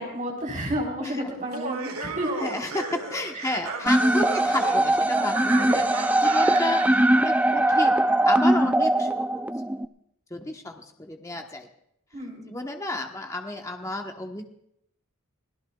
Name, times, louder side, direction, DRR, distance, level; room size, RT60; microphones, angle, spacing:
voice 1, 0.0-2.5 3.3-4.3 8.6-8.8 12.1-12.5, equal, 35° right, -1 dB, 4.3 m, -32 dB
Laughter, 1.4-7.0, right 4 dB, 85° right, 2.4 m, -34 dB
voice 2, 2.4-9.3 10.3-11.7 12.5-14.4, left 2 dB, 15° left, 3 dB, 1.2 m, -32 dB
sound 1, 3.9-9.8, right 1 dB, 5° right, 0.5 m, -21 dB
27.0 x 17.5 x 2.4 m, 0.74 s
head